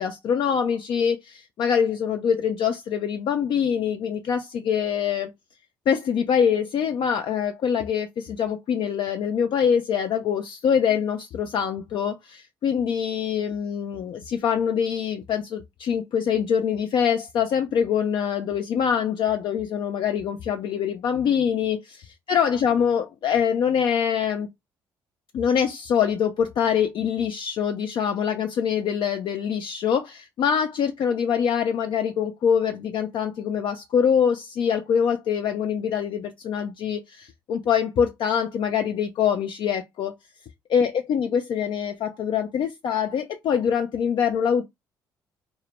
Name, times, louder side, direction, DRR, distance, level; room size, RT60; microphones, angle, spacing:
voice 1, 0.0-5.3 5.9-24.5 25.3-40.1 40.7-44.6, left 7 dB, 55° left, 0.4 m, -24 dB
2.1 x 2.0 x 2.9 m
hypercardioid pair, 60°, 9 cm